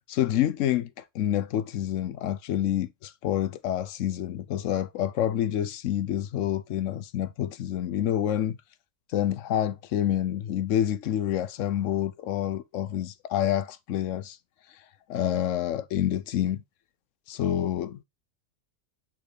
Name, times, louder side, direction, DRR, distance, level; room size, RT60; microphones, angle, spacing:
voice 1, 0.1-8.6 9.1-14.4 15.1-16.6 17.3-18.0, left 11 dB, 90° left, 1.0 m, -28 dB
8.5 x 3.9 x 3.2 m
omnidirectional pair, 1.3 m